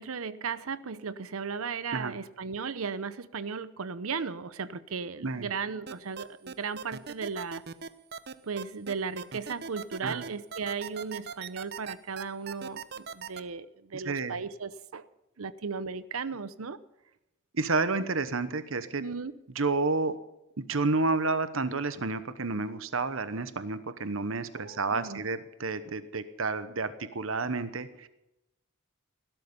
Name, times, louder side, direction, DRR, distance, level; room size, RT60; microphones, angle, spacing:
voice 1, 0.0-7.6 8.4-15.1 15.4-16.8 19.0-19.3 24.5-25.2, right 5 dB, 85° right, 15 dB, 0.8 m, -36 dB
sound 1, 5.9-13.4, right 6 dB, 50° right, 0.8 m, -39 dB
voice 2, 13.9-14.4 17.5-19.0 19.5-20.2 20.6-28.1, right 3 dB, 70° right, 12 dB, 1.1 m, -30 dB
17.5 x 12.5 x 5.5 m, 0.90 s
head